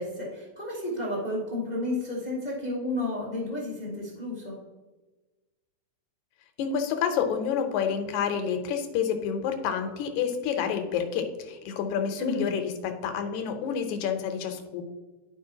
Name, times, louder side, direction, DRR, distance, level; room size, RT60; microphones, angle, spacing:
voice 1, 0.0-4.6 12.2-12.6, left 1 dB, 35° left, -6 dB, 0.6 m, -32 dB
voice 2, 6.6-14.8, left 7 dB, 75° left, 5 dB, 2.1 m, -29 dB
11.0 x 5.1 x 2.8 m, 1.2 s
omnidirectional pair, 3.6 m